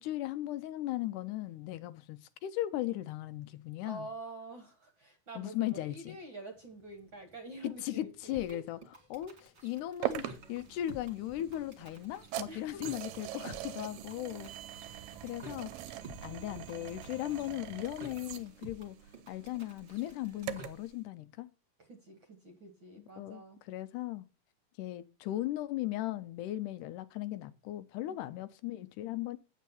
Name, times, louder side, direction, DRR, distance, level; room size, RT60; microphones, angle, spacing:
voice 1, 0.0-4.1 5.4-6.2 7.6-8.8 9.1-14.5 15.2-19.0 19.3-21.5 23.2-23.4 23.7-24.3 24.8-29.4, left 14 dB, 80° left, 2.0 m, -37 dB
voice 2, 3.8-8.6 12.5-12.8 14.9-15.6 15.9-17.0 21.8-23.6 28.1-28.4, right 2 dB, 50° right, 1.5 m, -48 dB
sound 1, 6.5-17.8, right 1 dB, 5° right, 1.2 m, -62 dB
sound 2, 8.3-20.6, right 2 dB, 25° right, 1.7 m, -52 dB
sound 3, 10.0-20.9, right 14 dB, 75° right, 1.8 m, -43 dB
8.5 x 8.2 x 4.2 m
omnidirectional pair, 3.8 m